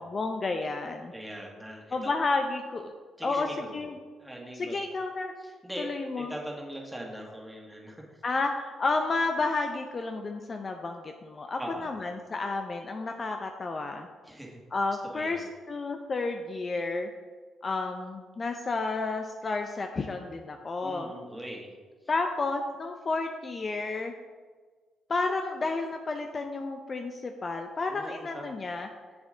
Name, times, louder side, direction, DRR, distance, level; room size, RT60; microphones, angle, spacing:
voice 1, 0.0-1.1 1.9-2.9 3.2-3.5 3.7-4.0 4.5-5.3 5.8-6.3 8.2-14.1 14.7-17.1 17.6-21.1 22.1-24.1 25.1-28.9, left 3 dB, 35° left, 5 dB, 0.5 m, -31 dB
voice 2, 1.1-2.1 3.2-3.9 4.2-4.8 5.4-5.9 6.2-8.2 11.6-11.9 14.2-14.6 15.1-15.4 20.8-21.7 27.9-28.4, right 1 dB, 5° right, -2 dB, 1.8 m, -41 dB
7.3 x 7.0 x 3.8 m, 1.4 s
cardioid pair, 90°, 0 cm